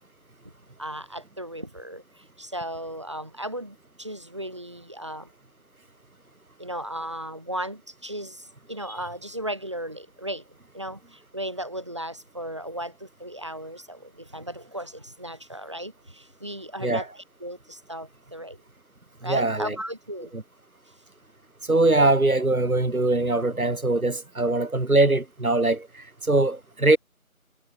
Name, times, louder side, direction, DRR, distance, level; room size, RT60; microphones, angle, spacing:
voice 1, 0.8-5.3 6.6-18.6 19.2-20.3, right 1 dB, 20° right, 4.4 m, -36 dB
voice 2, 19.2-19.8 20.3-20.4 21.6-27.0, right 2 dB, 75° right, 2.0 m, -22 dB
figure-of-eight pair, 175°, 43 cm